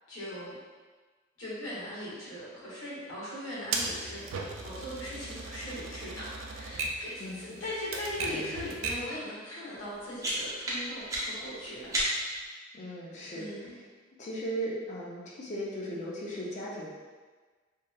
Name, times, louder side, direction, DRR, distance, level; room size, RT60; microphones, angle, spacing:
voice 1, 0.1-0.6 1.4-4.2 4.6-11.9 13.3-13.8, left 1 dB, 90° left, -9 dB, 1.1 m, -39 dB
Typewriter, 3.7-9.2, right 3 dB, 75° right, 0.3 m, -37 dB
sound 1, 9.8-12.5, right 1 dB, 15° right, 0.5 m, -33 dB
voice 2, 12.7-13.5 14.2-16.9, right 1 dB, 40° left, -4 dB, 0.5 m, -37 dB
3.0 x 2.2 x 2.3 m, 1.4 s
head